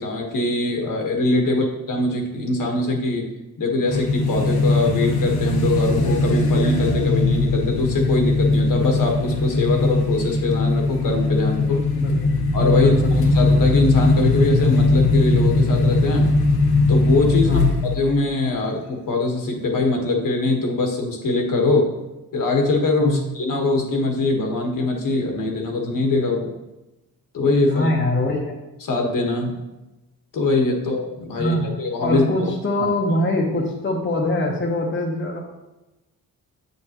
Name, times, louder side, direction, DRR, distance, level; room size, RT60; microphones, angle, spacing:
voice 1, 0.0-3.2 3.6-11.8 12.5-16.3 16.9-17.6 17.9-21.9 22.3-26.5 27.3-27.9 28.9-29.5 30.3-32.5, left 2 dB, 60° left, 2 dB, 1.4 m, -22 dB
sound 1, 3.9-18.1, left 2 dB, 80° left, 1.1 m, -19 dB
voice 2, 11.9-12.3 12.7-13.1 17.5-17.6 23.0-23.2 27.7-28.6 31.3-31.7 32.0-35.4, left 2 dB, 30° left, -1 dB, 1.0 m, -23 dB
7.3 x 6.8 x 3.0 m, 1.0 s
cardioid pair, 115°, 36 cm